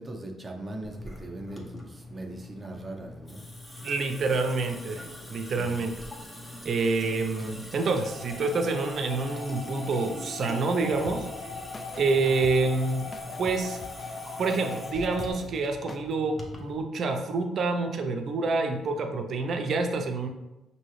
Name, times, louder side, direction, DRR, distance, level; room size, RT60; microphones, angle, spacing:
voice 1, 0.0-3.5 5.5-5.9, right 1 dB, 25° right, 1 dB, 0.7 m, -40 dB
Water tap faucet / Sink (filling or washing) / Drip, 0.8-16.8, left 2 dB, 15° left, 0.9 m, -43 dB
voice 2, 3.8-5.0 5.3-5.9 6.6-11.3 12.0-13.1 13.4-13.8 14.4-20.3, right 3 dB, 55° right, 5 dB, 0.6 m, -27 dB
sound 1, 8.0-15.3, left 3 dB, 80° left, 0.7 m, -41 dB
Blame The Kush, 10.9-16.1, left 4 dB, 40° left, 0.3 m, -46 dB
5.2 x 2.8 x 3.1 m, 0.99 s
cardioid pair, 90°, 0 cm